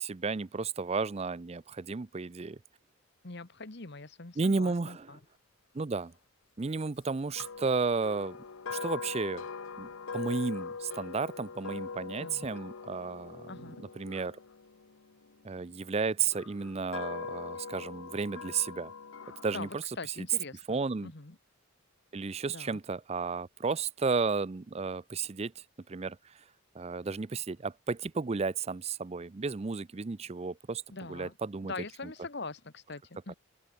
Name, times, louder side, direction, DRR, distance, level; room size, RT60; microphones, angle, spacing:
voice 1, 0.0-2.6 4.4-5.1 5.7-6.1 6.6-8.4 8.7-9.4 9.8-13.7 14.0-14.4 15.4-18.9 19.4-19.8 20.7-21.1 22.1-25.5 25.9-26.2 26.7-30.8 31.1-31.7, right 4 dB, 30° right, 0.4 m, -33 dB
voice 2, 3.2-5.2 12.2-12.5 13.5-13.8 19.5-21.4 22.5-22.8 30.9-31.3 31.6-33.3, left 3 dB, 55° left, 1.4 m, -43 dB
sound 1, 7.4-15.5 16.2-19.7, left 5 dB, 80° left, 0.8 m, -42 dB
open air
head